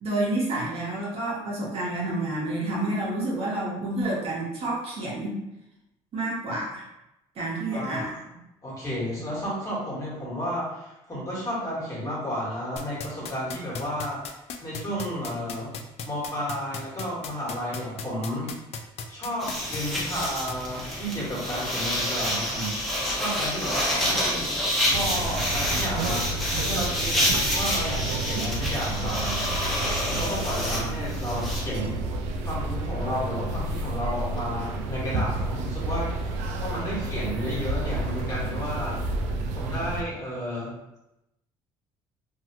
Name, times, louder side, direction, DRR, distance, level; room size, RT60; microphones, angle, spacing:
voice 1, 0.0-5.4 6.1-6.8 7.3-8.1, right 2 dB, 55° right, -5 dB, 1.1 m, -29 dB
voice 2, 7.7-8.1 8.6-14.2 14.6-15.7 16.0-18.5 19.1-22.7 23.1-24.5 24.8-27.3 27.5-29.4 30.0-32.0 32.4-39.0 39.5-40.8, equal, 30° left, -6 dB, 1.4 m, -32 dB
sound 1, 12.8-20.5, left 6 dB, 60° left, 0.4 m, -35 dB
sound 2, 19.4-31.6, equal, ahead, 1.0 m, -28 dB
sound 3, 24.9-40.0, right 2 dB, 75° right, 0.4 m, -30 dB
2.7 x 2.3 x 2.9 m, 0.90 s
supercardioid pair, 85°, 12 cm